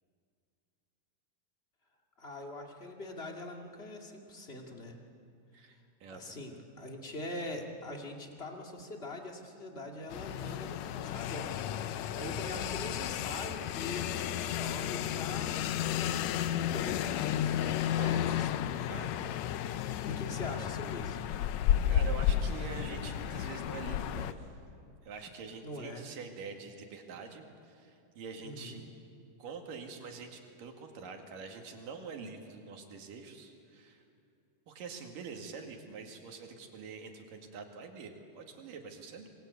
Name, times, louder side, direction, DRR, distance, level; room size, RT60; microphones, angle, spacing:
voice 1, 2.2-5.0 5.7-5.8 6.1-17.7 18.0-18.6 20.0-21.2 25.6-26.0 28.4-28.8, left 1 dB, 20° left, 2 dB, 1.9 m, -43 dB
voice 2, 5.5-6.4 18.0-18.4 18.9-19.2 19.9-20.0 21.8-24.5 25.0-28.8 29.4-34.0 34.7-39.3, right 5 dB, 85° right, 3 dB, 3.8 m, -45 dB
sound 1, 10.1-24.3, left 10 dB, 75° left, 1.7 m, -32 dB
26.5 x 21.5 x 8.3 m, 2.4 s
omnidirectional pair, 3.7 m